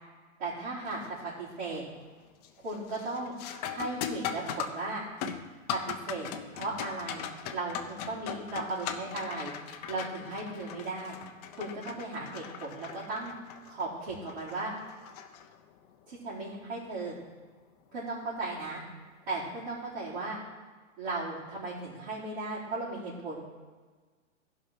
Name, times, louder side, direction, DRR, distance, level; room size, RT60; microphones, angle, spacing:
voice 1, 0.4-1.8 2.6-3.3 3.7-5.0 5.7-6.3 6.5-9.5 9.9-11.2 11.5-13.3 13.7-14.8 16.1-17.2 17.9-18.8 19.3-20.4 21.0-23.4, right 2 dB, 45° right, -9 dB, 4.0 m, -36 dB
sound 1, 0.9-1.2 1.7-2.1 2.4-15.9 18.5-18.6 19.4-19.6, left 8 dB, 30° left, 0.7 m, -40 dB
15.0 x 5.5 x 5.8 m, 1.4 s
hypercardioid pair, 150°, 41 cm